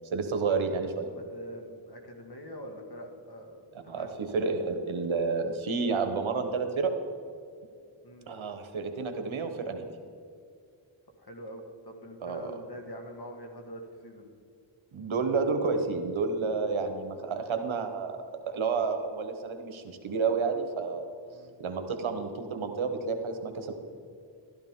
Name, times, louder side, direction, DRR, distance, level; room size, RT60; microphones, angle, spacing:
voice 1, 0.1-1.1 3.9-6.9 8.3-9.9 12.2-12.6 14.9-18.2 18.5-21.1 21.6-23.7, right 4 dB, 75° right, 6 dB, 1.3 m, -30 dB
voice 2, 1.1-4.1 8.0-8.3 11.2-14.3 21.3-21.5, equal, 50° left, 3 dB, 2.0 m, -44 dB
13.0 x 10.5 x 3.8 m, 2.4 s
cardioid pair, 45°, 48 cm